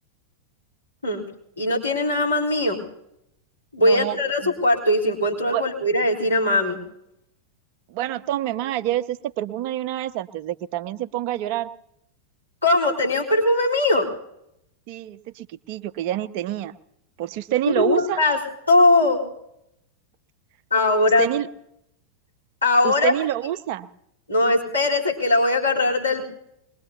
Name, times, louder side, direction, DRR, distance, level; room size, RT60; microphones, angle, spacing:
voice 1, 1.6-2.8 3.7-6.8 12.6-14.1 17.7-18.4 18.7-19.2 20.7-21.3 22.6-23.1 24.3-26.2, left 2 dB, 85° left, -6 dB, 3.8 m, -20 dB
voice 2, 3.8-4.2 4.4-4.5 5.5-5.6 7.9-11.7 14.9-16.7 17.2-18.2 21.2-21.5 22.8-23.9, right 12 dB, 45° right, 11 dB, 0.7 m, -27 dB
23.5 x 21.0 x 2.8 m, 0.79 s
figure-of-eight pair, 90°, 0 cm